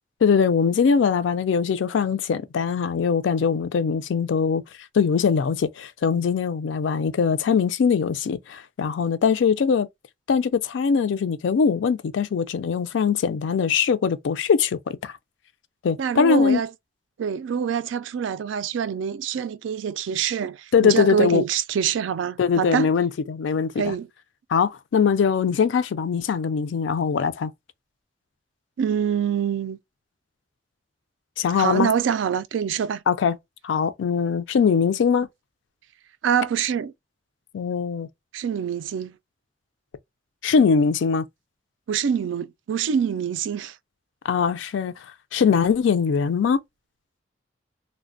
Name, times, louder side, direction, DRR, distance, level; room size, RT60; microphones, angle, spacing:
voice 1, 0.2-4.6 4.9-9.9 10.3-15.1 15.8-16.6 20.7-21.4 22.4-23.9 24.5-27.5 31.4-31.9 33.1-33.3 33.6-35.3 37.5-38.1 40.4-41.2 44.2-44.9 45.3-46.6, left 6 dB, 80° left, 0.4 m, -21 dB
voice 2, 16.0-16.7 17.2-22.9 23.8-24.1 28.8-29.8 31.6-33.0 36.2-36.9 38.3-39.2 41.9-43.7, right 7 dB, 90° right, 0.3 m, -25 dB
3.2 x 2.1 x 2.5 m
head